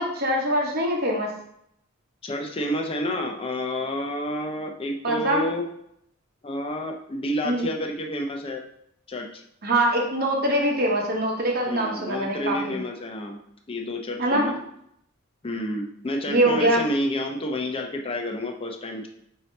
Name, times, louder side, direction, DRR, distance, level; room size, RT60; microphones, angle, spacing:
voice 1, 0.0-1.3 5.0-5.4 7.4-7.7 9.6-12.8 14.2-14.5 16.3-16.8, right 1 dB, 50° right, 0 dB, 1.0 m, -23 dB
voice 2, 2.2-5.6 6.4-8.6 9.1-9.4 11.7-13.4 13.7-14.5 15.4-19.1, left 1 dB, 25° left, 2 dB, 0.5 m, -29 dB
5.3 x 2.8 x 3.2 m, 0.74 s
head